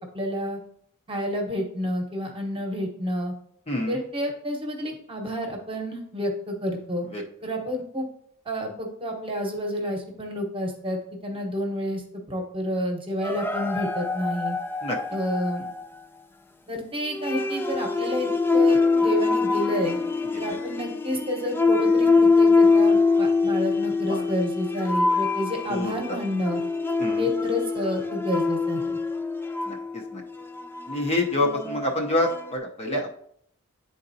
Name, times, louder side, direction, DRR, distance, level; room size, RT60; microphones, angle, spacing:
voice 1, 0.1-0.6 1.1-3.3 3.9-7.1 7.4-8.1 8.4-12.0 12.3-14.6 15.1-15.6 16.7-20.0 20.4-26.6 27.2-29.0, equal, 25° right, 2 dB, 1.1 m, -29 dB
voice 2, 3.7-4.0 7.1-7.2 14.8-15.0 24.1-24.2 25.7-25.9 27.0-27.2 29.7-29.8 30.1-30.2 30.9-33.1, left 1 dB, 30° left, 0 dB, 0.7 m, -26 dB
sound 1, 13.2-15.9 17.1-32.5, left 4 dB, 10° left, 0.4 m, -24 dB
9.7 x 3.9 x 2.7 m, 0.66 s
head